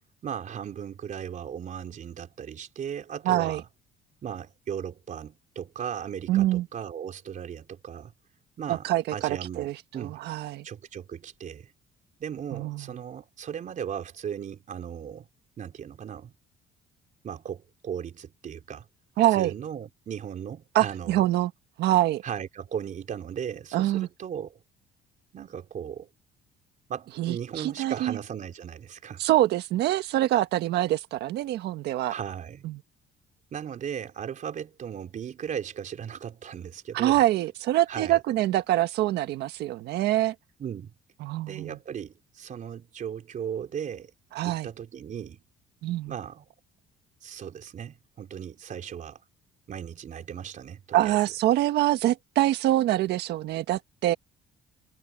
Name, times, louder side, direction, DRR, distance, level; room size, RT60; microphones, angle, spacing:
voice 1, 0.2-3.7 4.2-8.1 8.6-10.2 10.6-11.7 12.2-15.3 15.6-16.3 17.2-18.9 19.3-21.2 22.2-24.6 25.3-26.1 26.9-29.2 32.1-32.6 33.5-37.2 37.9-38.2 40.6-40.9 41.5-44.1 44.4-45.4 46.1-46.4 47.2-49.2 49.7-51.2, right 8 dB, 50° right, 4.1 m, -37 dB
voice 2, 3.2-3.6 6.3-6.7 8.7-10.6 12.5-12.9 19.2-19.5 20.7-21.5 21.8-22.2 23.7-24.1 27.2-28.2 29.2-32.1 32.6-32.8 36.9-40.3 41.2-41.8 44.3-44.7 45.8-46.1 50.9-54.1, right 14 dB, 80° right, 1.6 m, -25 dB
cardioid pair, 110°, 17 cm